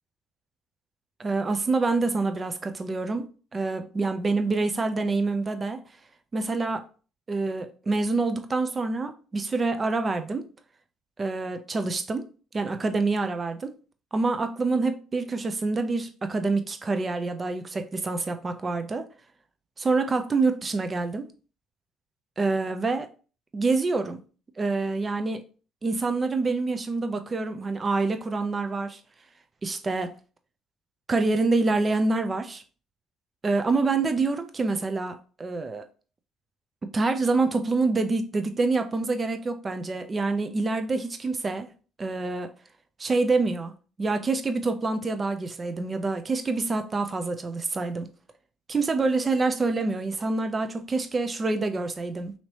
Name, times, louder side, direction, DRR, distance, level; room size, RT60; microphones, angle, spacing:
voice 1, 1.2-5.8 6.3-6.8 7.3-10.5 11.2-12.3 12.5-13.7 14.1-19.1 19.8-21.3 22.4-23.1 23.5-24.2 24.6-25.4 25.8-29.0 29.6-30.1 31.1-32.6 33.4-35.8 36.9-41.7 42.0-42.5 43.0-43.7 44.0-48.1 48.7-52.3, right 3 dB, 35° right, 0.5 m, -26 dB
3.0 x 2.8 x 2.9 m
hypercardioid pair, 60°, 0 cm